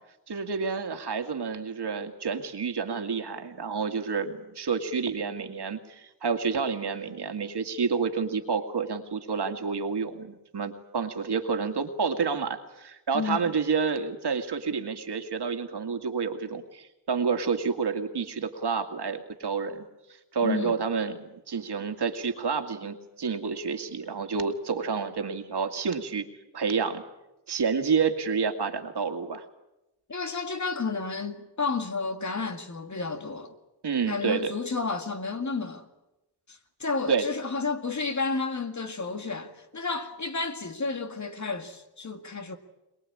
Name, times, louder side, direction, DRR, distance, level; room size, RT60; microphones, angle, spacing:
voice 1, 0.3-19.9 20.3-26.3 26.5-27.0 27.5-29.5 33.8-34.5 37.1-37.3, right 5 dB, 70° right, 2.2 m, -29 dB
voice 2, 13.1-13.5 20.4-20.8 30.1-33.5 34.1-35.8 36.5-42.6, left 4 dB, 45° left, 2.0 m, -31 dB
23.0 x 21.5 x 8.7 m
wide cardioid pair, 135°, 41 cm